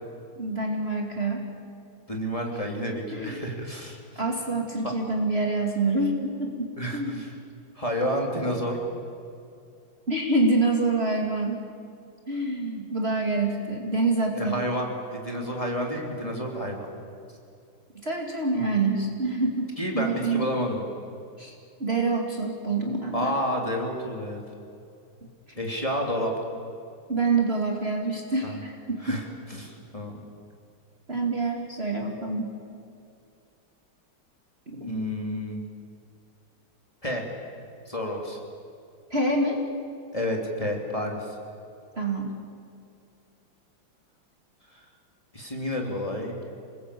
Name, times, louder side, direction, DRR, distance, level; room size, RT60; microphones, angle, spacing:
voice 1, 0.4-1.5 3.1-3.4 4.2-7.2 10.1-11.7 12.3-14.6 17.9-20.5 21.4-21.5 21.8-23.4 27.1-29.2 31.1-32.5 34.7-34.9 39.1-39.6 42.0-42.3, right 2 dB, 30° right, 1 dB, 2.6 m, -26 dB
voice 2, 2.1-4.0 4.8-4.9 6.8-7.3 7.7-8.8 14.3-16.9 19.8-20.8 23.1-24.4 25.6-26.3 28.4-28.6 29.0-29.2 29.5-30.2 34.8-35.6 37.0-37.2 37.9-38.4 40.1-41.3 44.7-44.8 45.3-46.4, equal, 15° left, 0 dB, 3.3 m, -30 dB
27.5 x 20.5 x 8.5 m, 2.5 s
omnidirectional pair, 2.3 m